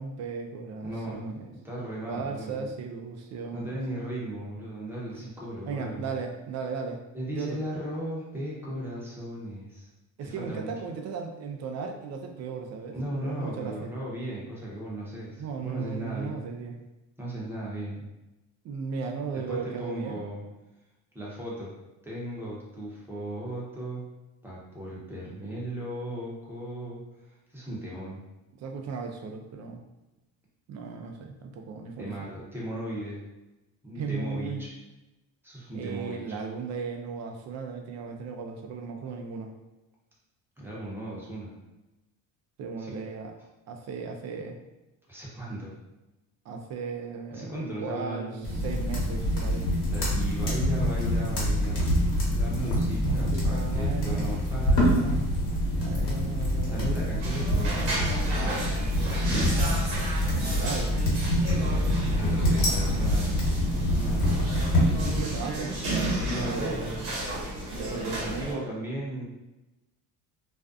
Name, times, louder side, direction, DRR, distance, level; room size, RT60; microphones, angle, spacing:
voice 1, 0.0-1.5 2.1-3.8 5.2-5.3 5.7-7.0 7.3-7.6 10.2-13.9 15.4-16.8 18.6-20.2 28.6-29.8 30.7-32.3 34.0-34.6 35.7-39.5 42.6-43.3 43.7-44.6 46.5-48.3 48.6-49.6 53.0-54.4 54.9-55.3 55.8-57.1 60.2-60.9 65.0-65.7 66.5-66.9 67.7-68.7, right 5 dB, 50° right, 4 dB, 0.4 m, -36 dB
voice 2, 0.8-1.2 1.5-2.7 3.5-6.1 7.1-9.9 10.2-10.7 12.9-16.5 17.2-18.1 19.3-20.4 21.1-21.7 22.0-24.0 24.4-28.2 32.0-33.2 33.8-34.7 35.4-36.3 40.6-41.5 42.8-42.9 45.1-45.7 47.3-48.8 49.9-51.9 52.3-55.1 56.7-58.8 61.5-63.4 63.9-64.4 66.2-67.1 67.9-69.2, right 1 dB, 5° right, -6 dB, 0.8 m, -37 dB
sound 1, 48.4-65.2, equal, 65° left, 1.1 m, -26 dB
sound 2, 57.2-68.5, right 1 dB, 90° right, 0.8 m, -33 dB
2.5 x 2.2 x 2.4 m, 1.0 s
cardioid pair, 105°, 35 cm